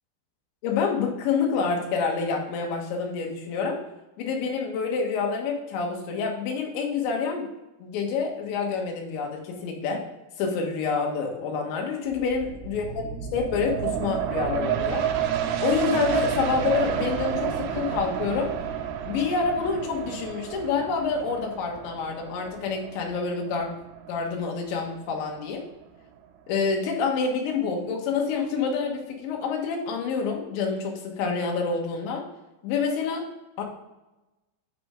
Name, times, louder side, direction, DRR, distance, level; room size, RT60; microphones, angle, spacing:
voice 1, 0.6-3.8 4.2-7.5 7.8-10.0 10.4-12.9 13.3-15.1 15.6-18.5 19.1-23.7 24.1-25.6 26.5-32.2 32.6-33.3 33.6-33.7, left 5 dB, 80° left, 1 dB, 3.6 m, -27 dB
sound 1, 12.1-25.4 25.8-25.9, right 9 dB, 85° right, 2.2 m, -30 dB
10.5 x 5.6 x 3.7 m, 1.0 s
omnidirectional pair, 5.2 m